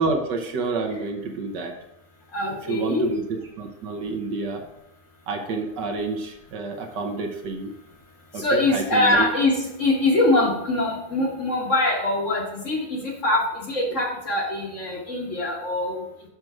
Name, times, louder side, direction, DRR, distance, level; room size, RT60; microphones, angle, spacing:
voice 1, 0.0-1.7 2.7-4.6 5.3-7.7 8.3-9.3 13.9-14.0, right 4 dB, 65° right, 3 dB, 1.5 m, -28 dB
voice 2, 2.3-3.1 8.4-16.0, left 2 dB, 45° left, -1 dB, 1.4 m, -23 dB
6.6 x 6.1 x 4.7 m, 0.81 s
omnidirectional pair, 2.1 m